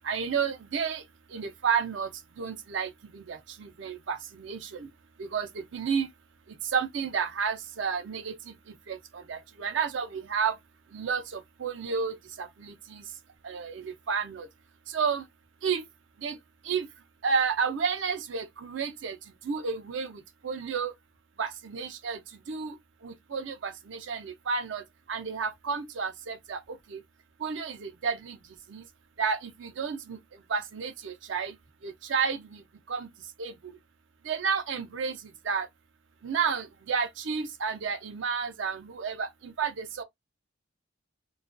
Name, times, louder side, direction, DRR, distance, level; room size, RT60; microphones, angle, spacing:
voice 1, 0.0-4.9 5.2-6.1 6.5-10.6 10.9-13.1 13.4-14.5 14.9-15.3 15.6-15.9 16.2-16.4 16.6-16.9 17.2-19.2 19.4-20.9 21.4-27.0 27.4-28.9 29.2-30.2 30.5-31.6 31.8-33.1 33.4-33.8 34.2-35.7 36.2-40.0, right 6 dB, 65° right, 0.5 m, -32 dB
2.3 x 2.2 x 2.4 m
head